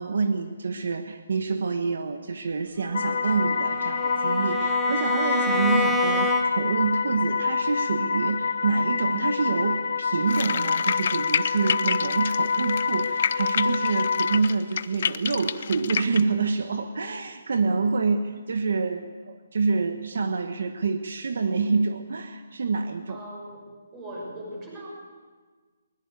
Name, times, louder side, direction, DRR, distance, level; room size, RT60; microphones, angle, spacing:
voice 1, 0.0-23.2, right 4 dB, 60° right, 7 dB, 1.3 m, -27 dB
sound 1, 2.9-14.4, left 5 dB, 55° left, 1.2 m, -27 dB
Bowed string instrument, 2.9-6.8, left 2 dB, 5° left, 1.0 m, -28 dB
sound 2, 10.3-16.2, left 7 dB, 40° left, 0.7 m, -29 dB
voice 2, 23.1-23.6 23.9-24.9, right 1 dB, 10° right, -3 dB, 6.2 m, -39 dB
22.0 x 21.0 x 8.3 m, 1.4 s
hypercardioid pair, 175°, 0 cm